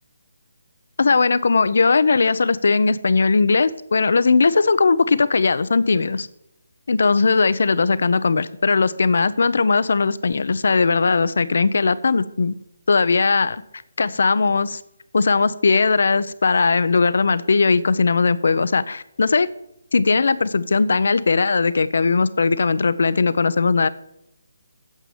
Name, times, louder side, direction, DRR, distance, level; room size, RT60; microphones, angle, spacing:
voice 1, 1.0-6.3 6.9-12.5 12.9-13.6 14.0-14.8 15.1-19.5 19.9-23.9, left 4 dB, 70° left, 16 dB, 0.7 m, -18 dB
9.0 x 6.9 x 7.2 m, 0.81 s
hypercardioid pair, 160°, 0 cm